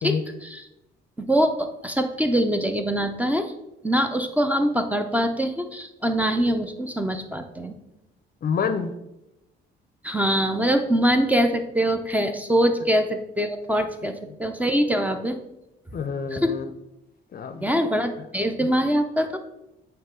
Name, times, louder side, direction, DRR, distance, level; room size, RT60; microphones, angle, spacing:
voice 1, 1.3-3.5 3.8-7.8 10.0-15.4 16.3-16.5 17.6-19.4, equal, 10° right, 6 dB, 0.5 m, -23 dB
voice 2, 8.4-8.9 15.9-16.7 17.3-17.6 18.6-18.7, left 6 dB, 50° left, 9 dB, 0.5 m, -27 dB
8.6 x 3.0 x 3.7 m, 0.90 s
cardioid pair, 90°, 20 cm